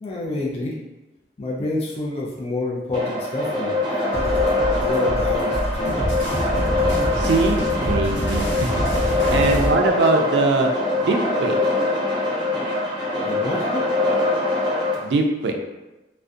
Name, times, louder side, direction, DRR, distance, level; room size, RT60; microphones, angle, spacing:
voice 1, 0.0-0.8 1.4-4.4 4.8-6.0 9.2-9.5 13.2-13.9, left 2 dB, 35° left, -3 dB, 0.3 m, -28 dB
sound 1, 2.9-14.9, left 2 dB, 25° right, 0.6 m, -23 dB
sound 2, 4.1-9.7, equal, 85° left, 0.8 m, -26 dB
voice 2, 7.2-8.5 9.0-11.6 15.0-15.5, right 3 dB, 70° right, 3 dB, 0.3 m, -22 dB
2.4 x 2.1 x 2.5 m, 1.1 s
head